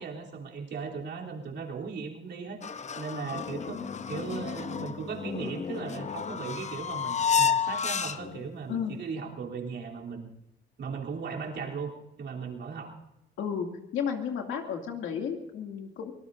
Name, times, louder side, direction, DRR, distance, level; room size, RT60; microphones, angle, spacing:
voice 1, 0.0-3.8 4.1-10.3 10.8-11.9 12.2-12.9, right 5 dB, 65° right, -1 dB, 3.4 m, -37 dB
sound 1, 2.6-8.5, left 6 dB, 35° left, 0.8 m, -31 dB
voice 2, 8.7-9.0 13.4-13.7 13.9-16.1, left 7 dB, 85° left, 2 dB, 2.6 m, -33 dB
24.5 x 19.0 x 2.7 m, 0.88 s
cardioid pair, 90°, 20 cm